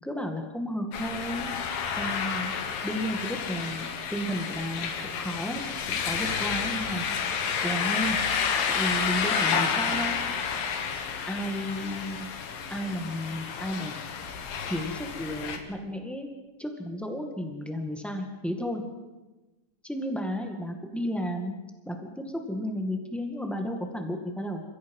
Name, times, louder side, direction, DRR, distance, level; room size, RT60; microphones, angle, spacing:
voice 1, 0.0-1.5 2.0-2.5 2.8-5.6 5.9-7.0 7.6-8.2 8.7-10.2 11.3-12.3 12.7-13.9 14.6-16.3 16.6-18.8 19.8-21.5 21.8-24.6, equal, ahead, 3 dB, 0.6 m, -33 dB
sound 1, 0.9-15.6, left 6 dB, 80° left, 3.3 m, -30 dB
29.5 x 16.0 x 5.5 m, 1.1 s
omnidirectional pair, 4.0 m